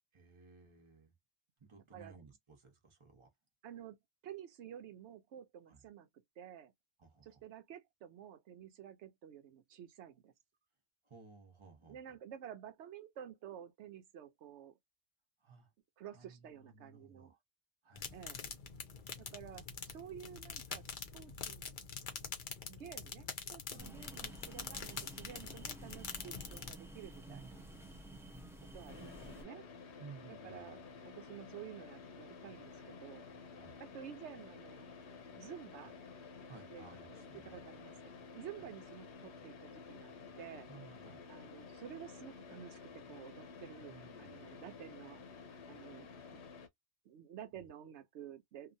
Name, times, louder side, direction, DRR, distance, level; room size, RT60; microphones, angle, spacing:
voice 1, 0.1-1.1 1.6-3.3 5.7-5.8 7.0-7.4 11.0-12.2 15.4-15.7 16.1-17.4 17.8-18.2 22.9-23.1 23.7-23.9 27.3-28.2 28.9-29.3 30.0-30.9 33.5-33.8 36.5-37.7 38.6-38.7 40.7-41.2 43.9-44.5, right 5 dB, 30° right, 0.9 m, -58 dB
voice 2, 3.6-4.0 4.2-6.1 6.4-6.7 7.2-10.3 11.9-14.8 16.0-17.3 18.1-18.4 19.2-21.6 22.7-27.5 28.7-29.6 30.4-30.8 31.0-33.3 33.8-34.9 35.4-36.0 36.7-37.9 38.3-40.7 41.3-45.2 45.7-46.1 47.0-48.8, right 9 dB, 85° right, 0.9 m, -51 dB
sound 1, 18.0-26.7, left 6 dB, 50° left, 0.8 m, -45 dB
sound 2, 23.8-29.4, right 1 dB, 5° right, 0.6 m, -52 dB
Car / Idling, 28.9-46.7, left 4 dB, 75° left, 1.0 m, -52 dB
2.9 x 2.5 x 2.6 m
omnidirectional pair, 1.1 m